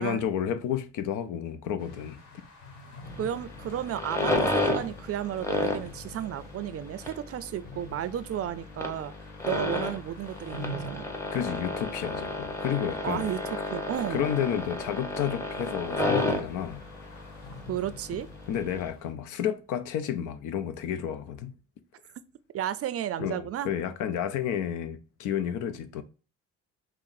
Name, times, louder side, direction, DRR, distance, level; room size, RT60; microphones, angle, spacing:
voice 1, 0.0-2.2 11.3-13.3 14.1-16.9 18.5-21.6 23.2-26.0, left 9 dB, 85° left, 0.5 m, -31 dB
sound 1, 1.8-19.1, left 1 dB, 60° left, 1.5 m, -48 dB
sound 2, 3.0-18.9, left 2 dB, 10° left, 0.8 m, -32 dB
voice 2, 3.2-9.1 9.5-11.0 13.0-14.3 17.7-18.3 22.5-23.7, right 10 dB, 50° right, 0.4 m, -33 dB
5.6 x 2.0 x 2.5 m
cardioid pair, 90°, 30 cm